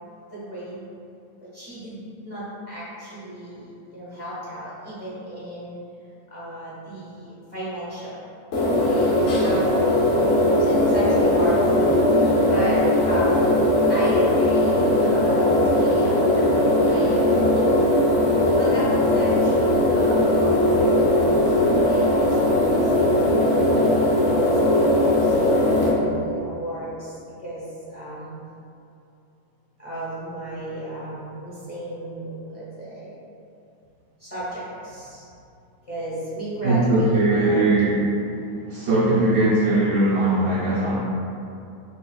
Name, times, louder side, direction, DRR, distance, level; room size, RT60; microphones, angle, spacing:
voice 1, 0.3-0.8 1.5-5.8 6.3-8.1 8.5-8.7 9.3-9.7 10.6-12.1 12.5-13.5 13.9-17.7 18.6-23.2 24.2-27.2 27.4-28.3 29.8-33.1 34.2-35.2 35.9-37.6, equal, 25° left, -11 dB, 1.0 m, -34 dB
sound 1, 8.5-25.9, left 1 dB, 55° left, 0.8 m, -19 dB
voice 2, 36.6-38.0 38.7-41.0, right 2 dB, 60° right, -9 dB, 1.1 m, -20 dB
5.3 x 2.4 x 2.3 m, 2.6 s
omnidirectional pair, 1.8 m